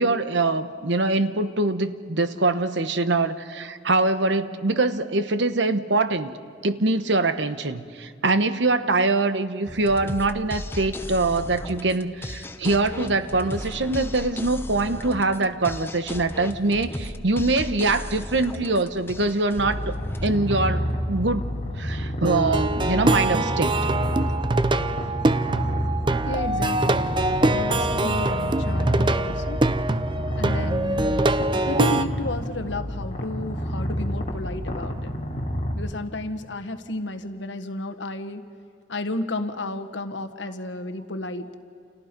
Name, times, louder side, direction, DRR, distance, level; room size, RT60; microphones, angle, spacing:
voice 1, 0.0-6.3 6.6-21.5 21.8-23.8, right 2 dB, 80° right, 11 dB, 1.1 m, -23 dB
sound 1, 9.7-21.3, left 1 dB, 15° left, 0.8 m, -36 dB
Purr, 19.6-35.7, equal, 35° left, 3.0 m, -29 dB
Plucked string instrument, 22.3-32.1, right 2 dB, 25° right, 0.6 m, -24 dB
voice 2, 26.2-27.0 27.4-29.6 30.4-31.3 31.7-35.1 35.7-38.4 38.9-41.5, left 2 dB, 80° left, 9 dB, 1.4 m, -32 dB
30.0 x 28.5 x 5.3 m, 2.3 s
head